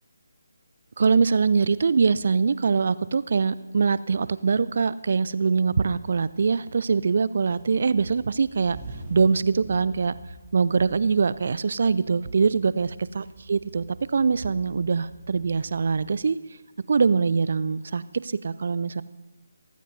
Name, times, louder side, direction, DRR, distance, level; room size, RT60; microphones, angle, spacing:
voice 1, 1.0-8.8 9.1-10.1 10.5-13.8 14.1-16.4 16.9-19.0, right 5 dB, 50° right, 18 dB, 0.5 m, -23 dB
sound 1, 5.5-5.6 6.0-7.1 7.4-16.1, right 1 dB, 20° right, 3.5 m, -46 dB
28.5 x 14.5 x 2.7 m, 1.2 s
figure-of-eight pair, 145°, 0 cm